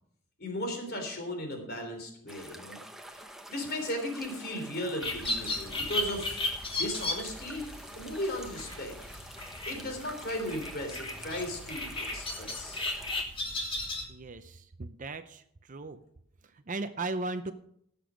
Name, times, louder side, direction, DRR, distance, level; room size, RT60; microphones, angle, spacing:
voice 1, 0.4-2.8 3.5-6.4 6.8-7.6 7.9-8.9 9.6-12.9, left 1 dB, 45° left, 4 dB, 3.3 m, -36 dB
sound 1, 2.3-13.2, right 1 dB, ahead, 1.0 m, -48 dB
sound 2, 5.0-14.0, left 2 dB, 25° left, 1.9 m, -36 dB
voice 2, 14.1-16.0 16.4-17.5, right 3 dB, 35° right, 10 dB, 0.6 m, -37 dB
17.0 x 6.9 x 5.1 m, 0.71 s
head